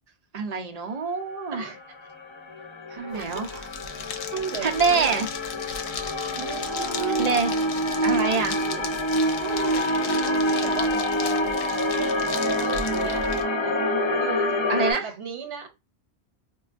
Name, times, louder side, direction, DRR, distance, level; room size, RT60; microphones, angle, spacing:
voice 1, 0.3-1.6 2.9-3.5 4.6-5.3 7.2-7.5 8.0-8.5 14.7-15.1, right 5 dB, 45° right, 0.6 m, -25 dB
sound 1, 1.7-14.9, left 1 dB, 30° left, 0.6 m, -26 dB
sound 2, 3.1-13.4, left 5 dB, 80° left, 0.9 m, -37 dB
voice 2, 3.1-3.5 4.3-5.2 6.4-7.5 8.1-8.9 9.4-10.9 11.9-12.3 12.6-13.7 14.2-14.6 15.0-15.7, right 7 dB, 80° right, 1.1 m, -36 dB
4.3 x 2.2 x 2.4 m
omnidirectional pair, 1.1 m